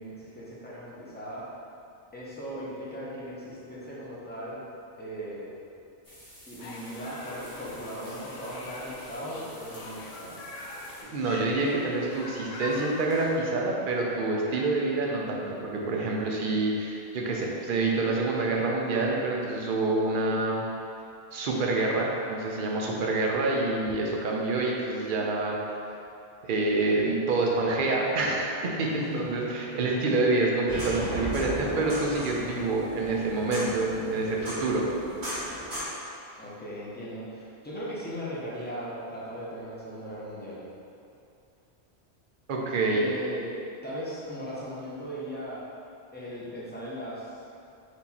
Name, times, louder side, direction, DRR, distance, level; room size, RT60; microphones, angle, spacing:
voice 1, 0.0-1.5 2.1-4.6 5.0-5.5 6.5-10.4 28.9-29.2 30.1-30.3 36.4-40.6 42.9-43.5 43.8-45.6 46.1-47.3, equal, 10° left, -8 dB, 0.8 m, -38 dB
sound 1, 6.0-11.0, equal, 85° left, 2.0 m, -51 dB
sound 2, 6.6-13.4, left 2 dB, 70° left, 0.8 m, -42 dB
voice 2, 11.1-20.6 21.3-25.6 26.4-34.9 42.5-43.1, right 2 dB, 55° right, -2 dB, 0.7 m, -27 dB
sound 3, 30.7-35.9, equal, 85° right, 1.8 m, -35 dB
4.5 x 2.7 x 4.1 m, 2.6 s
omnidirectional pair, 1.2 m